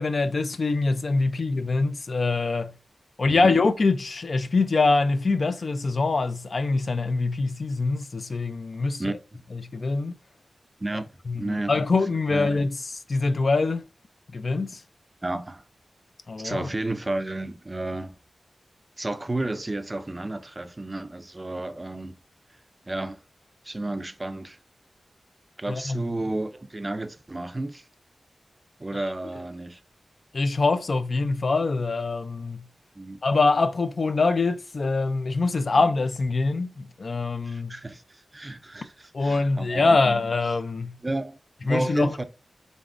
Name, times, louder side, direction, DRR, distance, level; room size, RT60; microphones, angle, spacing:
voice 1, 0.0-2.7 3.2-9.2 9.5-10.2 11.3-12.7 13.1-13.8 14.3-14.8 16.3-16.7 25.7-26.0 30.3-32.6 33.2-37.7 39.1-40.9 41.7-42.2, left 3 dB, 60° left, 0.4 m, -24 dB
voice 2, 9.0-9.4 10.8-11.1 11.4-11.7 12.3-12.5 15.2-15.6 16.4-18.2 19.0-22.2 22.8-23.2 23.6-24.6 25.6-27.9 28.8-29.8 32.9-33.2 35.7-35.8 37.4-40.2 41.0-42.2, right 2 dB, 25° right, 0.4 m, -32 dB
3.9 x 3.5 x 2.5 m
wide cardioid pair, 85°, 0 cm